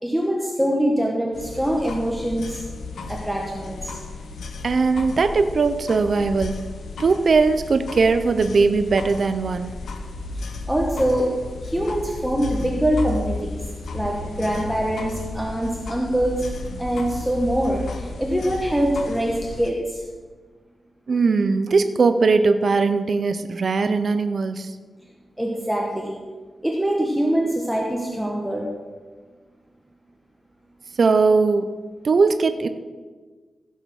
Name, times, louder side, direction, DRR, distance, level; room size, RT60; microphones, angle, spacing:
voice 1, 0.0-2.6 3.1-4.0 10.7-11.3 11.6-13.5 13.9-16.4 16.8-20.0 25.4-26.2 26.6-28.7, right 1 dB, 5° right, -2 dB, 1.2 m, -24 dB
sound 1, 1.3-19.7, left 3 dB, 90° left, 1.1 m, -34 dB
voice 2, 4.6-6.7 7.0-9.7 21.1-24.7 31.0-31.7 32.0-32.7, right 4 dB, 45° right, 9 dB, 0.5 m, -19 dB
15.5 x 5.7 x 6.3 m, 1.4 s
wide cardioid pair, 175°, 0 cm